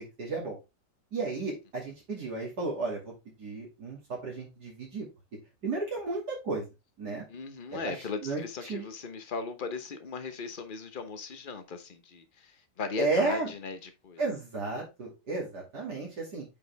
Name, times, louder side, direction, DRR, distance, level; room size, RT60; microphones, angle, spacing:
voice 1, 0.2-0.6 1.1-3.1 3.4-5.1 5.6-6.7 7.0-7.2 7.7-8.8 13.0-13.5 14.2-16.5, right 3 dB, 60° right, 3.0 m, -33 dB
voice 2, 7.3-14.2, left 4 dB, 35° left, 0.9 m, -38 dB
8.6 x 5.0 x 3.3 m
omnidirectional pair, 2.0 m